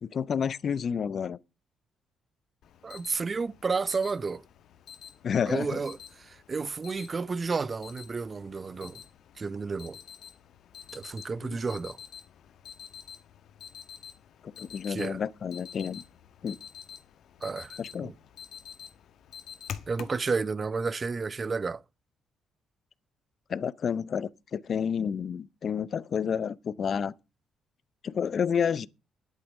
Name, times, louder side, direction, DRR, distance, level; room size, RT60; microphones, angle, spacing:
voice 1, 0.0-1.4 5.2-5.8 11.5-11.6 14.4-16.0 16.4-16.6 17.8-18.1 23.5-27.1 28.0-28.9, left 7 dB, 55° left, 0.6 m, -30 dB
Alarm, 2.6-20.2, left 8 dB, 70° left, 1.4 m, -48 dB
voice 2, 2.8-4.4 5.5-9.0 9.4-10.0 10.9-12.0 14.9-15.2 17.4-18.1 19.9-21.8, right 4 dB, 40° right, 0.7 m, -31 dB
11.0 x 8.7 x 6.4 m
supercardioid pair, 65°, 0 cm